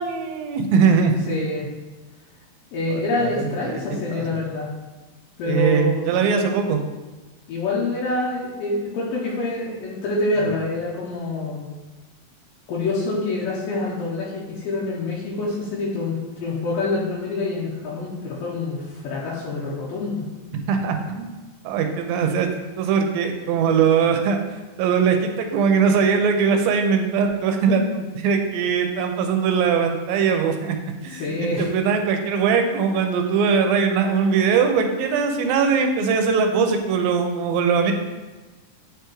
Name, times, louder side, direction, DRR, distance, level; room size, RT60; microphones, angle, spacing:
voice 1, 0.0-1.3 2.9-3.7 4.1-4.3 5.5-6.8 20.7-21.4 21.6-22.5 22.8-24.4 24.8-30.8 31.0-37.9, right 6 dB, 85° right, 5 dB, 2.3 m, -21 dB
voice 2, 1.3-1.7 2.7-4.7 5.4-6.5 7.5-11.7 12.7-20.3 31.1-31.7, left 2 dB, 75° left, -5 dB, 2.4 m, -26 dB
9.7 x 3.4 x 3.0 m, 1.2 s
omnidirectional pair, 4.2 m